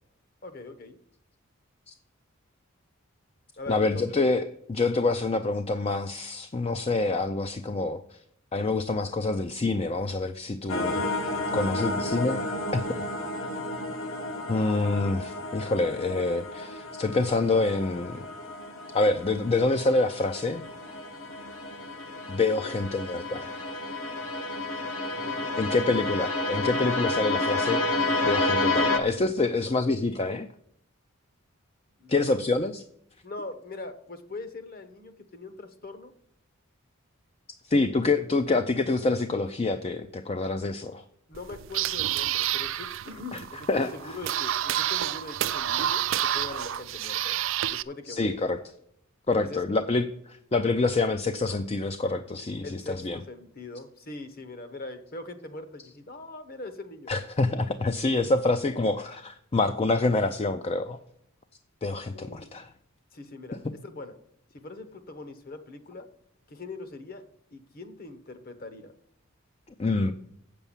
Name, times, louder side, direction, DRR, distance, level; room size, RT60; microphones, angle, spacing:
voice 1, 0.4-1.0 3.6-4.0 11.5-11.9 22.6-23.0 25.2-25.8 29.5-29.7 32.0-32.4 33.2-36.1 41.3-47.4 47.7-48.4 49.4-49.6 52.6-57.1 62.1-62.5 63.1-64.2 64.5-66.1 66.5-67.2 67.5-68.9, left 2 dB, 45° left, 10 dB, 1.1 m, -42 dB
voice 2, 3.7-8.2 8.5-11.1 11.5-12.5 12.7-12.9 14.5-18.3 18.9-20.6 22.3-23.7 25.6-30.5 32.1-32.8 37.6-41.0 43.3-43.4 43.7-44.2 48.1-48.6 49.3-53.2 57.1-61.0 61.8-62.7 69.8-70.1, left 3 dB, 30° left, 9 dB, 0.4 m, -26 dB
sound 1, 10.7-29.0, left 2 dB, 65° left, 1.4 m, -31 dB
sound 2, 41.3-47.8, right 11 dB, 60° right, 0.4 m, -29 dB
8.1 x 6.8 x 7.1 m, 0.71 s
head